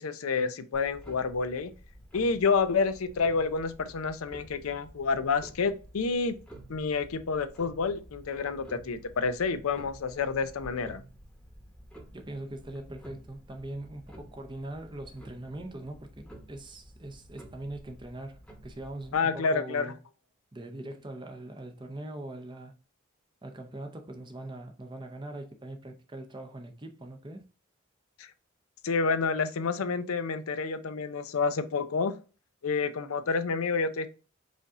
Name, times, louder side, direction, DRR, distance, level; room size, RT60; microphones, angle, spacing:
voice 1, 0.0-1.7 2.1-6.4 6.7-11.0 19.1-19.9 28.2-28.3 28.8-32.1 32.6-34.1, left 4 dB, 90° left, 0.5 m, -29 dB
Clock, 0.7-19.2, right 1 dB, 5° left, 1.0 m, -51 dB
voice 2, 12.1-20.0 20.5-22.7 23.4-27.4, right 1 dB, 20° right, 0.6 m, -42 dB
5.0 x 2.7 x 3.6 m
head